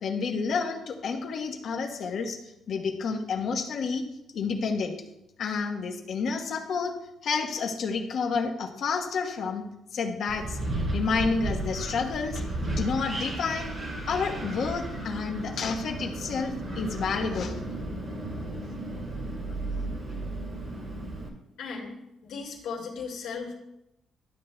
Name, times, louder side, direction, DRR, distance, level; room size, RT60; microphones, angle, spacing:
voice 1, 0.0-2.4 2.7-4.0 4.3-4.9 5.4-6.9 7.2-9.7 9.9-10.6 10.9-12.4 12.7-13.7 14.1-17.6 19.7-19.9, left 5 dB, 65° left, 4 dB, 1.1 m, -30 dB
Wind, 10.3-21.3, right 1 dB, 45° right, 2.1 m, -34 dB
voice 2, 21.6-21.9 22.2-23.6, left 5 dB, 85° left, -2 dB, 2.1 m, -36 dB
12.5 x 7.4 x 2.2 m, 0.85 s
cardioid pair, 90°, 0 cm